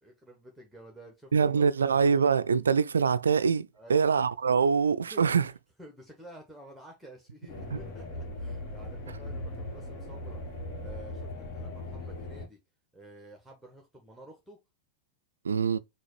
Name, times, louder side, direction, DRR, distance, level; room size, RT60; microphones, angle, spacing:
voice 1, 0.0-2.2 3.7-4.0 5.1-5.2 5.8-10.4 10.8-12.6 12.9-14.6, right 1 dB, ahead, 1.1 m, -51 dB
voice 2, 1.3-5.5 7.7-7.8 15.4-15.8, right 5 dB, 70° right, 0.3 m, -24 dB
sound 1, 7.5-12.5, left 1 dB, 45° left, 1.6 m, -39 dB
6.1 x 2.4 x 3.1 m
figure-of-eight pair, 90°, 0 cm